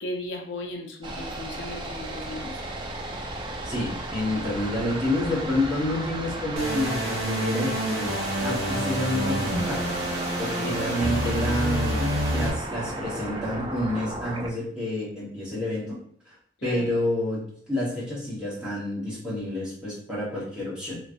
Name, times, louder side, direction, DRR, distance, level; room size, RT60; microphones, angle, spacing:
voice 1, 0.0-2.6 10.5-10.8 16.6-16.9, left 1 dB, 85° left, 2 dB, 0.5 m, -36 dB
sound 1, 1.0-14.5, right 2 dB, 25° right, 0.4 m, -34 dB
voice 2, 3.6-8.1 8.4-16.0 16.3-16.4 16.6-21.0, left 1 dB, 5° right, -8 dB, 1.2 m, -29 dB
sound 2, 6.6-12.5, equal, 70° right, 1.3 m, -28 dB
3.1 x 3.1 x 2.5 m, 0.64 s
head